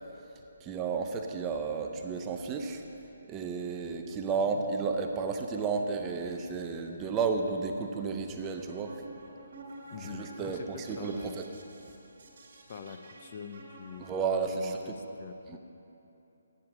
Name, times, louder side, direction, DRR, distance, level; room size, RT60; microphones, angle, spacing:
voice 1, 0.6-2.8 3.3-9.0 10.1-11.5 14.0-14.8 15.5-15.6, right 5 dB, 15° right, 4 dB, 0.5 m, -32 dB
sound 1, 8.2-14.5, right 2 dB, 55° right, 2.6 m, -50 dB
voice 2, 9.9-11.4 12.7-15.6, left 6 dB, 40° left, 7 dB, 0.5 m, -44 dB
9.1 x 7.6 x 7.2 m, 2.9 s
hypercardioid pair, 160°, 0 cm